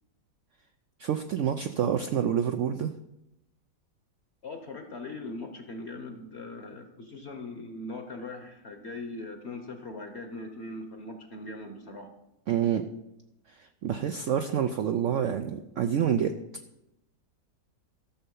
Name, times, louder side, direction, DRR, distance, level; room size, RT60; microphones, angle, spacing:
voice 1, 1.0-2.9 12.5-12.9 13.6-16.4, right 8 dB, 75° right, 7 dB, 0.7 m, -27 dB
voice 2, 4.4-12.1, left 2 dB, 45° left, 5 dB, 1.0 m, -40 dB
13.0 x 6.7 x 5.4 m, 0.90 s
omnidirectional pair, 1.8 m